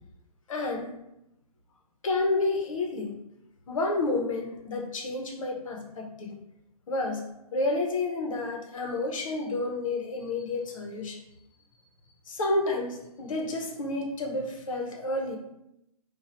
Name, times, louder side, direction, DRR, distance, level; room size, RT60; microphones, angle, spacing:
voice 1, 0.5-0.9 2.0-3.1 3.7-6.4 6.9-7.2 7.5-11.2 12.3-15.4, left 2 dB, 55° left, 1 dB, 0.8 m, -30 dB
2.8 x 2.3 x 4.2 m, 0.86 s
figure-of-eight pair, 135°, 20 cm